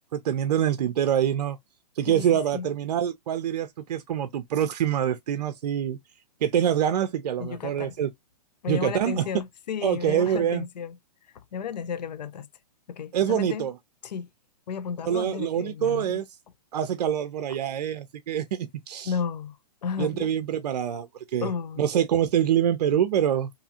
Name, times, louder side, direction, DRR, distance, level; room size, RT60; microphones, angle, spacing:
voice 1, 0.1-1.6 2.0-6.0 6.4-8.1 8.7-9.3 9.8-10.6 13.1-13.7 15.1-16.2 16.7-19.1 20.0-21.5 21.8-23.5, right 9 dB, 70° right, 0.5 m, -25 dB
voice 2, 2.1-2.7 7.4-7.9 8.6-10.9 11.3-12.5 12.9-13.7 14.0-14.3 14.7-16.2 19.0-19.6 19.8-20.3 21.4-21.9, left 7 dB, 85° left, 0.5 m, -33 dB
2.7 x 2.4 x 2.7 m
hypercardioid pair, 140°, 21 cm